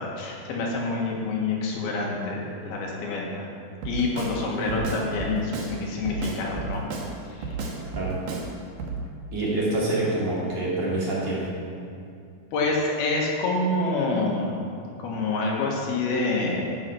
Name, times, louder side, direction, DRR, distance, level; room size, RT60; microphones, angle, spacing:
voice 1, 0.0-3.5 3.8-6.9 7.5-7.6 12.5-14.6 15.0-16.6, left 3 dB, 80° left, -2 dB, 3.3 m, -27 dB
Drum kit, 3.8-4.4 4.7-5.7 6.1-7.1 7.4-8.5 8.8-9.0, right 4 dB, 65° right, 2.6 m, -32 dB
voice 2, 9.3-11.5, right 2 dB, 50° right, -7 dB, 3.3 m, -26 dB
14.5 x 5.7 x 5.8 m, 2.4 s
omnidirectional pair, 4.4 m